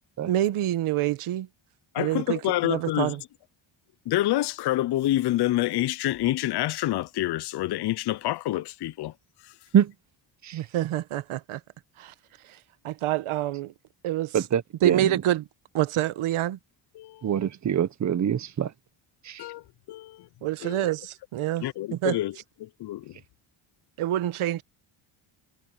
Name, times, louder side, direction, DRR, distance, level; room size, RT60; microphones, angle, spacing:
voice 1, 0.3-1.5 2.0-3.2 10.5-11.6 12.0-12.1 12.8-13.7 14.0-14.4 14.8-15.4 15.7-16.6 20.4-21.6 21.9-22.2 24.0-24.6, right 13 dB, 75° right, 1.1 m, -26 dB
voice 2, 1.9-3.2 4.1-9.1 9.4-9.5 17.0-17.3 19.4-20.3 20.6-20.9 21.6-22.3 22.6-23.2, left 15 dB, 50° left, 0.6 m, -27 dB
voice 3, 14.3-15.2 17.2-18.7 19.2-19.4, right 9 dB, 35° right, 0.8 m, -25 dB
cardioid pair, 135°, 50 cm